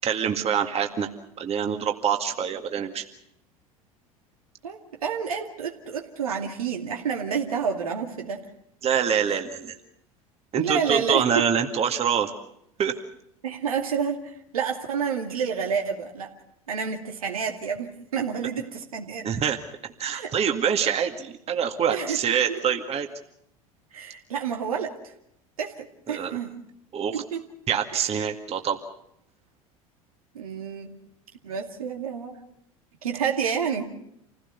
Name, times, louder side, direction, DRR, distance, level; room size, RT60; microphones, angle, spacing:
voice 1, 0.0-1.1 1.4-3.0 8.8-9.8 10.5-12.3 12.8-13.0 19.2-19.6 20.0-23.1 26.1-26.4 26.9-27.2 27.7-28.8, right 8 dB, 35° right, 5 dB, 2.1 m, -25 dB
voice 2, 4.6-8.4 10.5-11.4 13.4-16.3 16.7-19.3 20.1-20.3 21.9-22.2 22.5-22.6 23.9-24.9 25.6-26.5 27.1-27.4 30.3-30.9 31.4-32.4 33.0-33.8, right 6 dB, 80° right, 2 dB, 2.4 m, -29 dB
27.5 x 17.0 x 6.9 m, 0.76 s
figure-of-eight pair, 75°, 18 cm